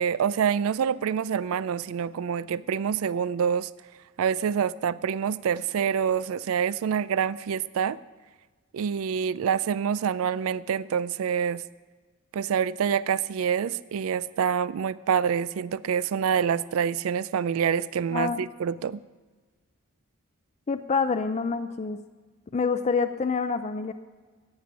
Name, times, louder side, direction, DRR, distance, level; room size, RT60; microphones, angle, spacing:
voice 1, 0.0-3.7 4.2-8.0 8.7-11.6 12.3-19.0, right 7 dB, 70° right, 18 dB, 0.3 m, -26 dB
voice 2, 18.1-18.5 20.7-22.0 22.5-23.9, left 5 dB, 30° left, 9 dB, 0.4 m, -27 dB
15.0 x 9.7 x 6.0 m, 1.4 s
head